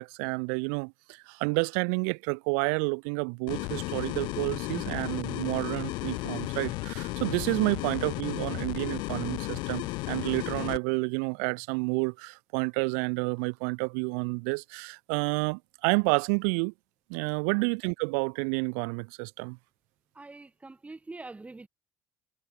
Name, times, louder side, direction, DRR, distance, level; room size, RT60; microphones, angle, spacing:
voice 1, 0.0-16.7 17.1-19.6, right 40 dB or more, 90° right, 0.9 m, -30 dB
sound 1, 3.5-10.8, left 23 dB, 80° left, 1.3 m, -34 dB
voice 2, 20.2-21.7, right 3 dB, 15° right, 5.5 m, -45 dB
supercardioid pair, 85°, 8 cm